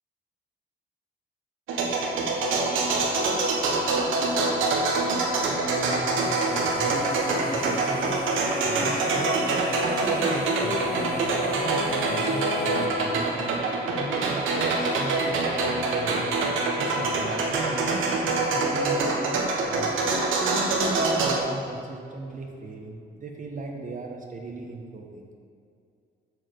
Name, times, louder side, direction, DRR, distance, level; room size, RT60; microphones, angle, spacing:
sound 1, 1.7-21.4, right 3 dB, 85° right, 1.4 m, -25 dB
voice 1, 5.5-8.2 8.6-9.6 9.8-13.5 13.9-16.3 16.8-19.9 20.4-25.2, right 3 dB, 40° right, 1 dB, 1.1 m, -36 dB
sound 2, 6.2-12.9, left 4 dB, 35° left, 0.7 m, -35 dB
7.9 x 4.8 x 6.6 m, 2.3 s
cardioid pair, 90°, 20 cm